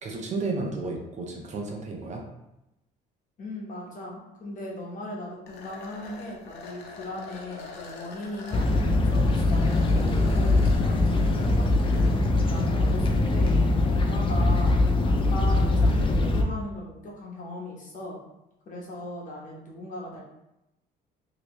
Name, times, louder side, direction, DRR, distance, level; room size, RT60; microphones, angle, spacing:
voice 1, 0.0-2.2, right 3 dB, 45° right, 1 dB, 0.7 m, -32 dB
voice 2, 3.4-8.7 9.0-12.0 12.5-13.5 13.9-14.8 15.0-18.2 18.6-20.2, left 1 dB, 50° left, -3 dB, 1.1 m, -38 dB
sound 1, 5.5-12.1, left 4 dB, 80° left, 0.8 m, -44 dB
sound 2, 8.5-16.4, left 2 dB, 30° left, 0.5 m, -22 dB
3.1 x 2.9 x 3.1 m, 0.89 s
cardioid pair, 110°, 17 cm